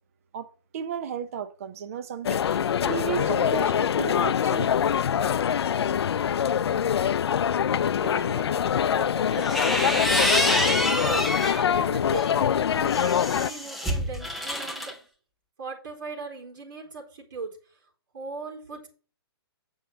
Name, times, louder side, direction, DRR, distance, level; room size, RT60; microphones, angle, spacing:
voice 1, 0.3-4.7, right 8 dB, 35° right, 0.7 m, -34 dB
sound 1, 2.2-13.5, left 8 dB, 75° left, 0.4 m, -24 dB
voice 2, 7.7-8.6 8.9-14.9 15.6-17.8 18.1-18.9, right 4 dB, 50° right, 4.2 m, -39 dB
sound 2, 9.3-11.6 12.1-14.9, left 1 dB, ahead, 0.4 m, -27 dB
9.1 x 5.7 x 6.3 m
hypercardioid pair, 170°, 13 cm